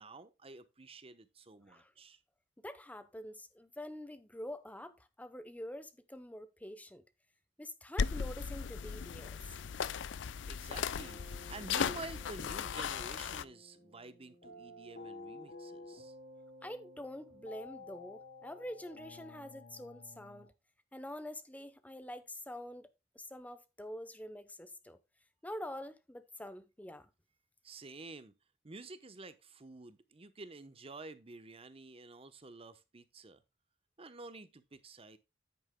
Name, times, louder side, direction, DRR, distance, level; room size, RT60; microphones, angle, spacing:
voice 1, 0.0-2.2 10.5-16.1 27.6-28.3 28.6-33.4 34.0-35.2, right 3 dB, 30° right, 0.9 m, -50 dB
voice 2, 2.6-7.0 7.6-9.4 16.6-20.5 20.9-22.9 23.1-25.0 25.4-27.1, left 1 dB, 10° left, 0.8 m, -46 dB
sound 1, 8.0-13.4, left 6 dB, 80° left, 0.4 m, -37 dB
sound 2, 11.0-20.5, left 2 dB, 55° left, 3.5 m, -53 dB
9.7 x 8.7 x 2.2 m
head